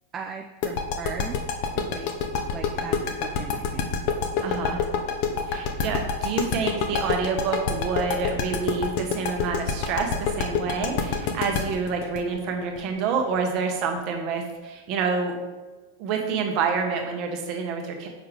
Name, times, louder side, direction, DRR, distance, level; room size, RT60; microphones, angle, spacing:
voice 1, 0.1-1.4 1.7-2.2 2.5-4.0, right 6 dB, 25° right, 4 dB, 0.4 m, -38 dB
sound 1, 0.6-13.4, left 6 dB, 45° left, 0.7 m, -26 dB
voice 2, 4.4-4.8 5.5-15.3 16.0-18.1, right 5 dB, 40° right, 3 dB, 1.1 m, -28 dB
7.1 x 5.9 x 3.3 m, 1.2 s
figure-of-eight pair, 90°, 0 cm